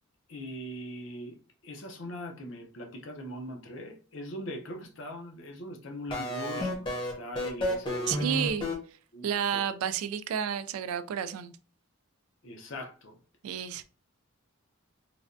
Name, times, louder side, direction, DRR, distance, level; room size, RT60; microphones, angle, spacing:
voice 1, 0.3-1.4 1.6-8.2 9.1-9.6 12.4-13.2, equal, 60° left, 0.6 m, -41 dB
sound 1, 6.1-8.7, left 1 dB, 25° left, 0.7 m, -31 dB
voice 2, 8.1-8.7 9.2-11.6 13.4-13.8, right 8 dB, 90° right, 0.3 m, -31 dB
3.2 x 2.2 x 2.5 m
head